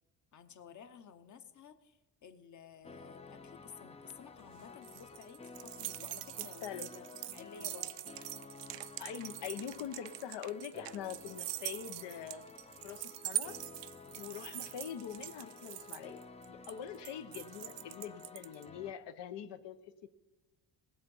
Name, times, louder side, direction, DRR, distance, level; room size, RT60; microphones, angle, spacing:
voice 1, 0.3-7.9, left 7 dB, 45° left, 10 dB, 1.0 m, -54 dB
sound 1, 2.8-18.9, left 4 dB, 15° left, 0.4 m, -53 dB
sound 2, 4.4-18.6, right 16 dB, 75° right, 0.5 m, -43 dB
voice 2, 6.4-6.9 9.0-12.5 12.8-13.6 14.1-20.1, left 9 dB, 80° left, 10 dB, 1.0 m, -44 dB
20.0 x 7.0 x 5.5 m, 1.1 s
cardioid pair, 140°, 42 cm